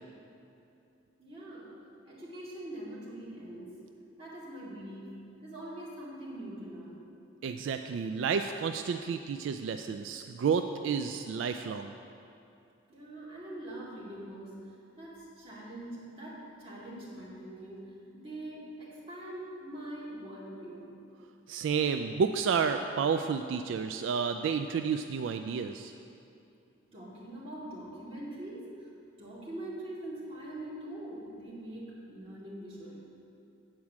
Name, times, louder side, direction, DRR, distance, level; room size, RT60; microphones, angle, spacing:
voice 1, 1.2-1.8 2.1-3.8 4.2-5.1 5.4-7.1 12.9-20.9 26.9-28.9 29.2-33.1, right 1 dB, 30° right, -7 dB, 2.2 m, -43 dB
voice 2, 7.4-11.9 21.5-25.9, right 6 dB, 75° right, 7 dB, 0.3 m, -31 dB
8.8 x 4.7 x 7.3 m, 2.7 s
head